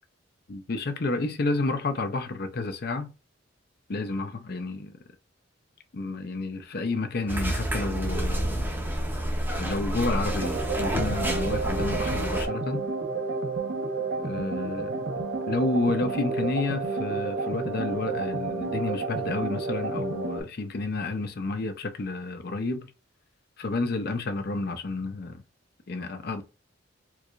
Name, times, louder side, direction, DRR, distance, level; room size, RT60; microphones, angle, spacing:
voice 1, 0.5-3.1 3.9-5.0 5.9-8.7 9.5-12.8 14.2-15.0 15.5-22.9 23.6-25.4 25.9-26.4, left 3 dB, 50° left, 0.6 m, -30 dB
sound 1, 7.3-12.5, right 1 dB, 10° right, 0.7 m, -29 dB
sound 2, 10.4-20.4, right 3 dB, 55° right, 0.7 m, -30 dB
4.6 x 2.5 x 2.3 m
head